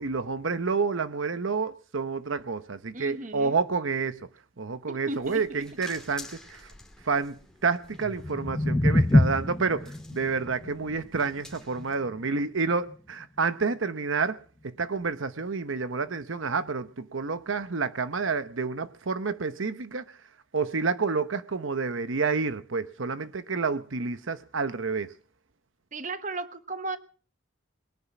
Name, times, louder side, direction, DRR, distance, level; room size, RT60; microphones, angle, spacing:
voice 1, 0.0-4.2 4.6-6.7 7.0-14.4 14.6-20.0 20.5-25.1, right 4 dB, 80° right, 0.9 m, -29 dB
voice 2, 2.9-3.6 4.9-5.4 25.9-27.0, right 2 dB, 40° right, 1.1 m, -35 dB
sound 1, 5.1-11.9, left 2 dB, 5° left, 2.5 m, -50 dB
sound 2, 7.9-14.1, left 1 dB, 20° left, 0.7 m, -27 dB
21.5 x 9.9 x 6.1 m
head